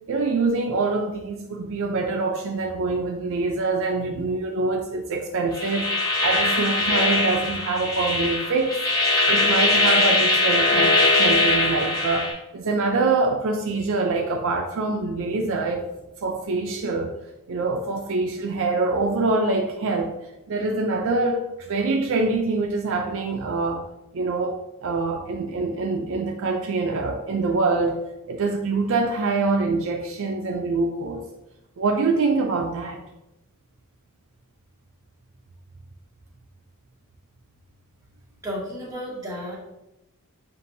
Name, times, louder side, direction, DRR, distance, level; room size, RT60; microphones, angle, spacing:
voice 1, 0.1-6.0 6.2-8.8 9.3-15.8 16.2-17.1 17.5-20.1 20.5-23.8 24.1-28.0 28.3-31.3 31.8-33.0, right 3 dB, 60° right, 2 dB, 0.4 m, -25 dB
sound 1, 5.5-12.3, left 2 dB, 15° left, 1.0 m, -21 dB
voice 2, 38.4-39.6, equal, 15° right, -6 dB, 1.3 m, -32 dB
6.7 x 2.5 x 2.6 m, 0.94 s
head